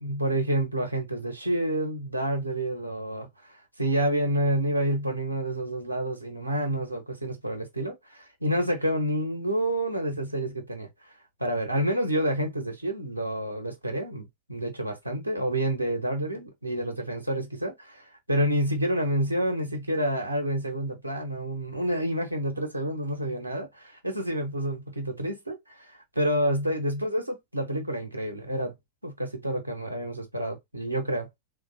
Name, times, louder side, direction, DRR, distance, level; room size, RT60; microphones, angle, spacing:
voice 1, 0.0-10.9 11.4-28.7 29.0-31.3, right 1 dB, 85° right, 1.0 m, -29 dB
3.2 x 2.4 x 4.1 m
figure-of-eight pair, 90°, 0 cm